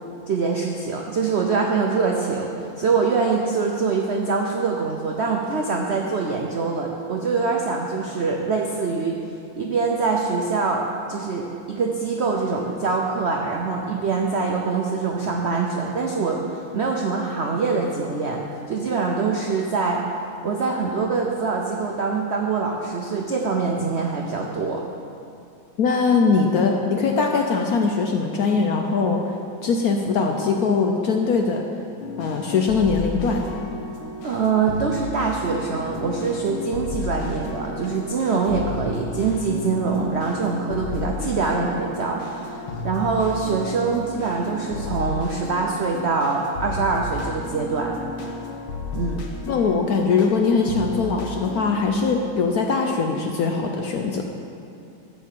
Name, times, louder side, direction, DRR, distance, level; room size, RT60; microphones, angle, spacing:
voice 1, 0.3-9.2 9.6-10.8 11.1-20.0 20.4-24.8 34.2-48.0 48.9-49.2, right 4 dB, 80° right, 0 dB, 0.6 m, -24 dB
voice 2, 25.8-29.2 29.6-31.6 32.2-33.4 49.5-54.2, left 4 dB, 70° left, 2 dB, 0.9 m, -21 dB
sound 1, 32.0-51.9, left 3 dB, 90° left, 1.8 m, -33 dB
12.0 x 4.5 x 7.4 m, 2.5 s
omnidirectional pair, 2.1 m